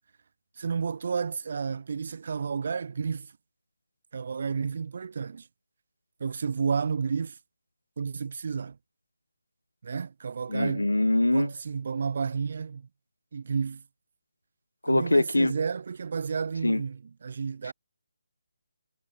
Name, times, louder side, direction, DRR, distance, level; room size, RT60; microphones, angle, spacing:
voice 1, 0.6-3.3 4.1-5.5 6.2-7.4 8.0-8.8 9.8-10.9 11.3-12.9 13.3-13.8 14.9-17.7, right 5 dB, 50° right, 5.1 m, -31 dB
voice 2, 10.5-11.5 14.8-15.5 16.6-16.8 17.6-17.7, left 2 dB, 75° left, 4.8 m, -23 dB
figure-of-eight pair, 145°, 0 cm